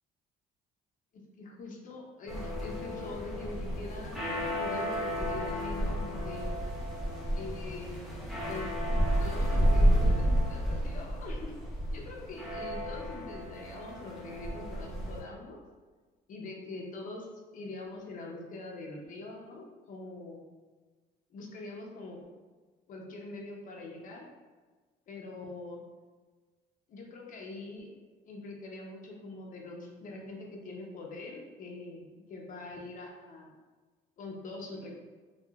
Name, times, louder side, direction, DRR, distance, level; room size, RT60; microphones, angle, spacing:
voice 1, 1.4-4.2 4.5-6.6 7.3-8.7 9.2-11.5 11.9-15.6 16.3-17.3 17.5-20.4 21.3-22.2 22.9-24.2 25.1-25.8 26.9-27.9 28.2-33.5 34.2-35.0, left 2 dB, 50° left, -1 dB, 0.6 m, -43 dB
sound 1, 2.3-15.2, equal, ahead, 0.8 m, -31 dB
2.8 x 2.4 x 2.3 m, 1.4 s
cardioid pair, 110°, 17 cm